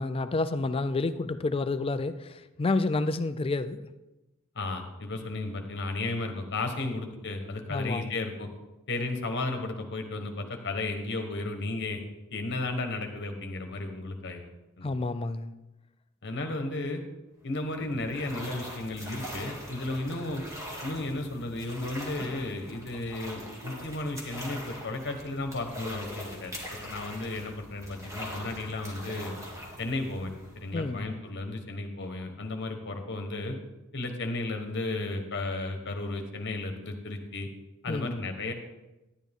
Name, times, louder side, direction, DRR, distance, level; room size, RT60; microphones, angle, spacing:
voice 1, 0.0-3.9 7.7-8.1 14.8-15.5 30.7-31.1 37.9-38.2, left 3 dB, 25° left, 12 dB, 0.4 m, -29 dB
voice 2, 4.5-8.5 8.9-12.0 12.3-14.5 14.8-15.0 16.2-17.0 17.4-20.4 20.8-26.5 26.8-29.3 29.8-33.6 33.9-37.5 37.8-38.5, left 2 dB, 55° left, 5 dB, 1.2 m, -34 dB
sound 1, 17.4-31.1, equal, 15° right, 1.8 m, -42 dB
10.5 x 10.5 x 3.6 m, 1.0 s
head